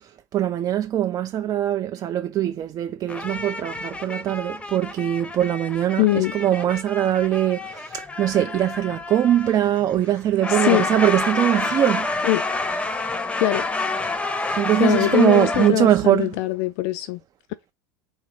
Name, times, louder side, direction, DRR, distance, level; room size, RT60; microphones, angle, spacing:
voice 1, 0.0-12.1 14.5-16.3, right 11 dB, 30° right, 0.4 m, -22 dB
sound 1, 3.1-15.7, left 3 dB, 10° left, 0.6 m, -29 dB
voice 2, 6.0-6.3 10.5-10.9 12.2-12.4 13.4-13.7 14.4-17.2, left 16 dB, 50° left, 0.4 m, -22 dB
3.9 x 3.0 x 2.9 m
figure-of-eight pair, 80°, 12 cm